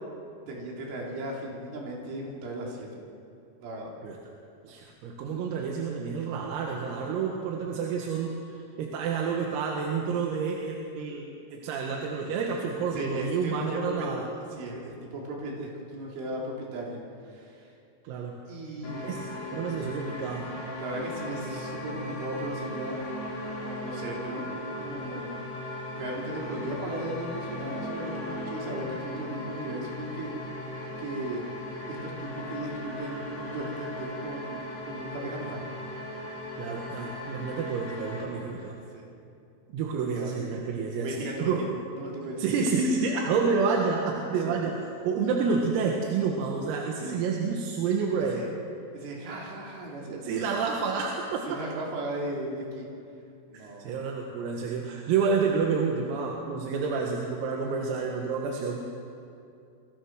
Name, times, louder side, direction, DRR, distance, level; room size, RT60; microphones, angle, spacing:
voice 1, 0.5-2.9 3.6-3.9 12.9-14.1 14.5-17.7 18.5-19.3 20.8-23.0 23.8-25.4 26.0-30.4 31.0-31.4 31.9-35.6 38.9-39.1 40.1-40.5 41.0-41.7 42.0-42.4 44.4-44.6 47.0-47.2 48.3-48.5 48.9-50.2 51.5-52.9 53.5-53.9, right 1 dB, 65° right, -2 dB, 6.3 m, -36 dB
voice 2, 4.6-14.3 18.1-18.4 19.0-19.2 19.5-20.5 36.6-38.8 39.7-41.8 42.4-48.4 50.1-51.6 53.5-58.8, right 5 dB, 85° right, 0 dB, 4.5 m, -29 dB
sound 1, 18.8-38.2, left 1 dB, 50° left, 7.0 m, -37 dB
28.0 x 25.0 x 6.4 m, 2.5 s
omnidirectional pair, 6.0 m